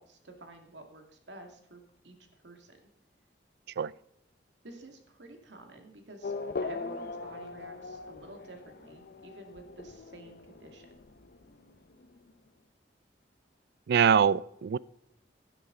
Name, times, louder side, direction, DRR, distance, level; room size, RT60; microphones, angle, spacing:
voice 1, 0.0-2.8 4.6-6.3 6.6-10.9, right 2 dB, 85° right, 4 dB, 2.1 m, -50 dB
Race car auto racing / Accelerating revving vroom, 6.2-12.3, left 3 dB, 60° left, 0.7 m, -40 dB
voice 2, 13.9-14.8, right 7 dB, 65° right, 22 dB, 0.3 m, -23 dB
12.0 x 10.0 x 3.8 m, 0.80 s
head